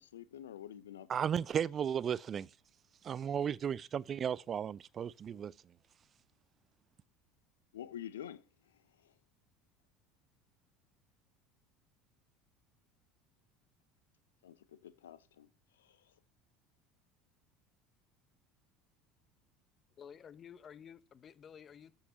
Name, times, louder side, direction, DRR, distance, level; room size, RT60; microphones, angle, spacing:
voice 1, 0.0-1.3 7.7-8.4 9.0-9.1 14.4-15.5 15.8-16.0, left 10 dB, 75° left, 0.7 m, -48 dB
voice 2, 1.1-2.5 3.0-5.5, right 8 dB, 35° right, 0.4 m, -35 dB
voice 3, 20.0-21.9, left 8 dB, 35° left, 0.8 m, -52 dB
14.0 x 5.6 x 2.8 m
figure-of-eight pair, 70°, 0 cm